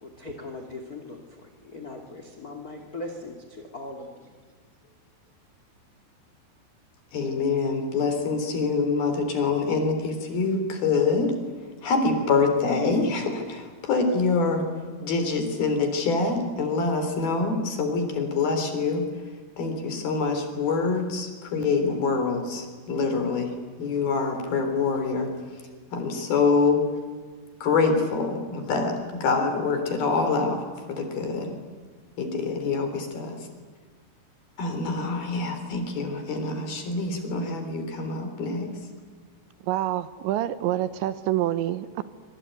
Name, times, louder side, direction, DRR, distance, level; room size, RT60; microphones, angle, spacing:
voice 1, 0.0-4.3, left 2 dB, 30° left, 4 dB, 1.7 m, -39 dB
voice 2, 7.1-11.4 11.8-14.7 15.0-19.1 19.6-23.5 23.8-25.3 25.9-26.8 27.6-31.6 32.2-33.5 34.6-38.8, left 4 dB, 55° left, 6 dB, 5.2 m, -25 dB
voice 3, 39.6-42.0, right 13 dB, 75° right, 13 dB, 3.1 m, -27 dB
26.0 x 24.0 x 9.3 m, 1.6 s
omnidirectional pair, 5.5 m